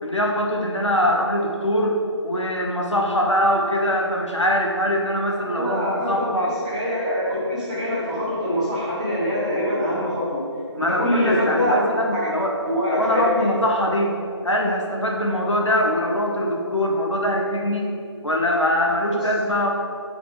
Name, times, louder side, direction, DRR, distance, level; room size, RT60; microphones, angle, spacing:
voice 1, 0.0-2.0 2.2-6.5 10.7-12.6 12.9-14.2 14.4-17.9 18.2-19.7, left 1 dB, 85° left, -1 dB, 1.2 m, -22 dB
voice 2, 5.5-10.5 10.8-11.7 12.1-12.3 12.6-13.5 19.1-19.3, equal, 15° right, -8 dB, 1.0 m, -24 dB
6.3 x 4.1 x 4.6 m, 2.4 s
figure-of-eight pair, 160°, 15 cm